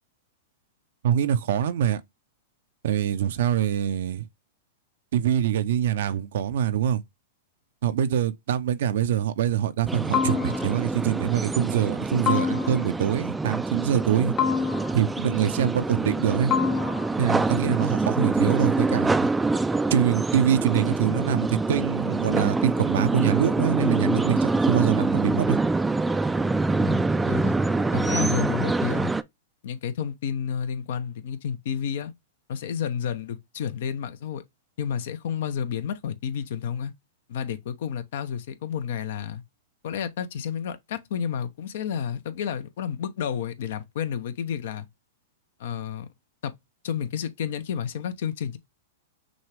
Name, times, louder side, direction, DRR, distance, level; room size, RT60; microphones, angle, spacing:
voice 1, 1.0-2.0 2.8-4.3 5.1-7.0 7.8-14.3 14.9-16.5 17.2-19.3 19.9-25.6, right 9 dB, 70° right, 0.6 m, -24 dB
sound 1, 9.9-29.2, right 3 dB, 10° right, 0.4 m, -25 dB
sound 2, 10.1-10.9 12.3-13.1 14.4-15.2 16.5-17.3, left 7 dB, 35° left, 0.8 m, -27 dB
voice 2, 26.8-27.6 27.9-29.1 29.6-32.1 32.5-34.4 34.8-36.9 37.3-39.4 39.8-44.9 45.6-46.1 46.4-46.5 46.8-48.6, left 8 dB, 65° left, 0.8 m, -31 dB
6.2 x 2.3 x 3.3 m
hypercardioid pair, 120°, 0 cm